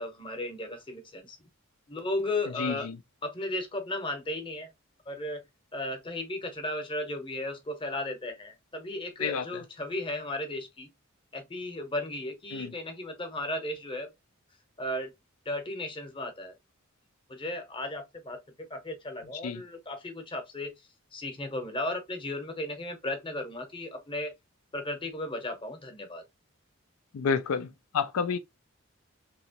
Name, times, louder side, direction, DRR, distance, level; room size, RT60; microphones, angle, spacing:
voice 1, 0.0-1.4 1.9-2.9 3.2-4.7 5.1-5.4 5.7-10.9 11.3-14.1 14.8-15.1 15.4-16.5 17.3-18.4 18.7-20.7 21.1-24.3 24.7-26.2, left 1 dB, 25° left, 0.8 m, -35 dB
voice 2, 2.6-3.0 9.2-9.6 12.5-12.7 19.4-19.6 27.1-27.7 27.9-28.4, left 6 dB, 80° left, 0.4 m, -29 dB
3.0 x 2.9 x 2.8 m
head